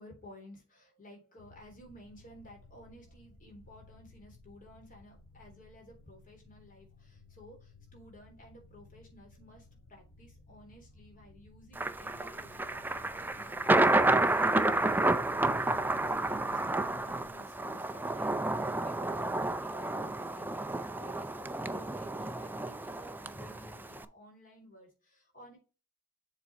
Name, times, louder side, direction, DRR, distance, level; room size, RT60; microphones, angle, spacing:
voice 1, 0.0-25.6, left 1 dB, 40° left, 0 dB, 3.4 m, -55 dB
sound 1, 1.4-17.3, left 3 dB, 70° left, 1.7 m, -58 dB
Thunder, 11.8-24.0, right 2 dB, 10° right, 0.4 m, -30 dB
7.4 x 4.2 x 4.2 m, 0.32 s
head